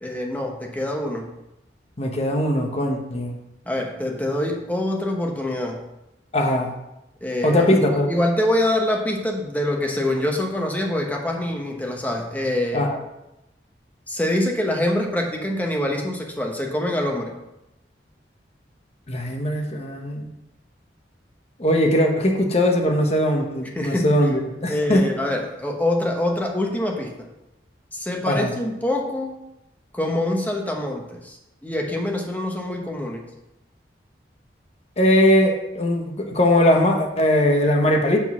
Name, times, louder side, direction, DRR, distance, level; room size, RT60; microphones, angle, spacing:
voice 1, 0.0-1.3 3.7-5.8 7.2-12.9 14.1-17.3 23.7-24.1 24.7-27.3 27.9-29.3 29.9-31.4 31.6-33.2, left 1 dB, 10° left, 2 dB, 0.9 m, -25 dB
voice 2, 2.0-3.4 6.3-6.7 7.4-8.1 12.7-13.0 19.1-20.3 21.6-25.0 28.3-28.5 35.0-38.2, left 1 dB, 35° left, 3 dB, 0.9 m, -20 dB
7.2 x 3.9 x 6.1 m, 0.90 s
head